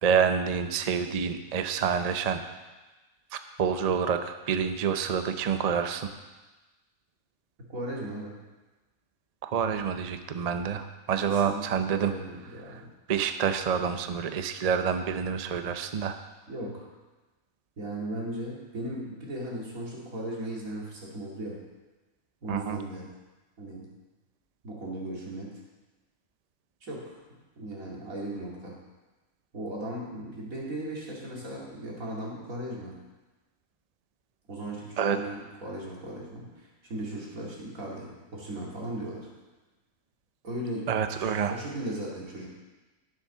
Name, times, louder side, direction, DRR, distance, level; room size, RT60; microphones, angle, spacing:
voice 1, 0.0-2.4 3.6-6.1 9.4-12.1 13.1-16.2 22.5-22.8 35.0-35.2 40.9-41.5, right 7 dB, 45° right, 8 dB, 0.5 m, -27 dB
voice 2, 7.7-8.4 11.2-12.9 16.5-16.9 17.8-21.6 22.4-23.1 23.6-23.9 24.6-25.5 26.8-28.8 29.5-33.0 34.5-39.3 40.4-42.5, right 1 dB, 80° right, -4 dB, 2.7 m, -37 dB
10.0 x 7.3 x 5.6 m, 1.2 s
omnidirectional pair, 1.4 m